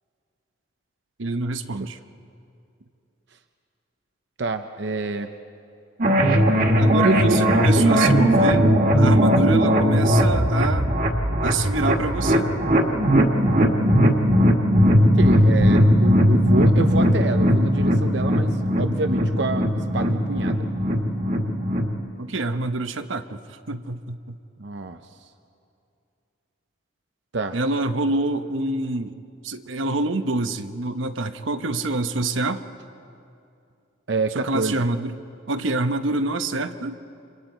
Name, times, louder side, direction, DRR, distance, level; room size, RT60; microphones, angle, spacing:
voice 1, 1.2-2.0 6.8-8.7 8.9-10.9 11.4-12.5 22.2-23.4 23.7-24.3 27.5-29.2 29.4-32.6 34.3-35.2 35.5-37.0, right 2 dB, 90° right, 8 dB, 1.0 m, -26 dB
voice 2, 4.4-5.3 7.0-7.4 15.0-20.6 24.6-25.3 27.3-27.6 34.1-34.9, right 3 dB, 65° right, 7 dB, 0.7 m, -27 dB
sound 1, 6.0-21.9, equal, 45° right, 1.8 m, -18 dB
30.0 x 26.5 x 4.5 m, 2.5 s
head